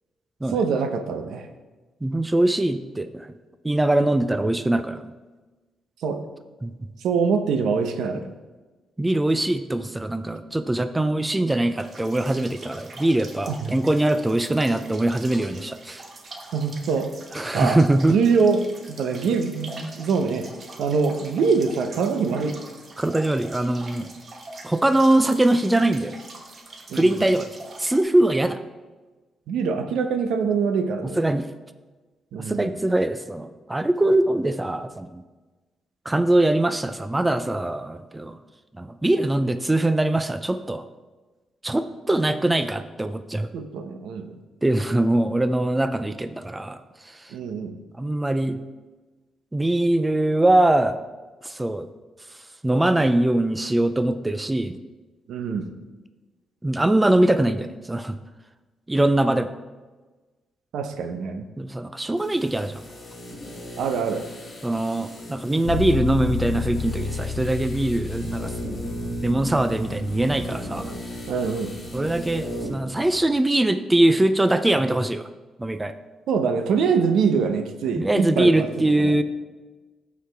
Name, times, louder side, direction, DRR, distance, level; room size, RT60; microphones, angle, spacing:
voice 1, 0.5-1.5 6.0-6.2 7.0-8.2 11.0-11.1 13.5-13.7 16.5-17.1 17.5-17.8 18.1-20.5 20.8-22.6 26.9-27.2 29.5-31.2 32.3-32.7 43.5-44.3 47.3-47.7 55.3-55.7 60.7-61.5 63.8-64.3 71.3-71.7 76.3-79.2, right 5 dB, 85° right, 7 dB, 0.7 m, -24 dB
voice 2, 2.0-3.3 3.6-5.1 6.6-6.7 9.0-16.0 17.3-18.2 23.0-24.1 24.6-26.2 26.9-27.5 27.8-28.6 31.0-31.5 32.4-35.2 36.1-38.4 38.8-40.8 41.6-43.5 44.6-47.3 48.0-48.6 49.5-51.0 51.4-51.9 52.6-54.8 56.6-58.2 58.9-59.5 61.6-62.8 64.6-68.5 69.2-70.9 71.9-75.3 75.6-75.9 78.0-79.2, right 1 dB, 10° right, 10 dB, 0.4 m, -22 dB
sound 1, 11.8-28.0, right 2 dB, 40° right, 1.1 m, -43 dB
sound 2, 62.2-72.8 73.1-73.2, right 1 dB, 30° left, 2.4 m, -36 dB
sound 3, 65.6-73.4, left 6 dB, 85° left, 0.9 m, -33 dB
14.0 x 4.8 x 3.4 m, 1.3 s
cardioid pair, 120°, 0 cm